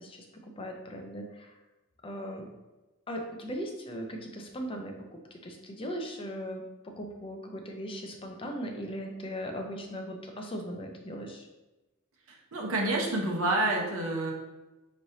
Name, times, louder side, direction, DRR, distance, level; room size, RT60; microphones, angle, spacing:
voice 1, 0.0-1.6 2.0-2.5 3.1-4.9 5.3-11.5, equal, 25° left, 2 dB, 0.5 m, -38 dB
voice 2, 12.3-14.3, right 2 dB, 70° right, -1 dB, 0.9 m, -28 dB
5.1 x 3.1 x 2.7 m, 1.1 s
head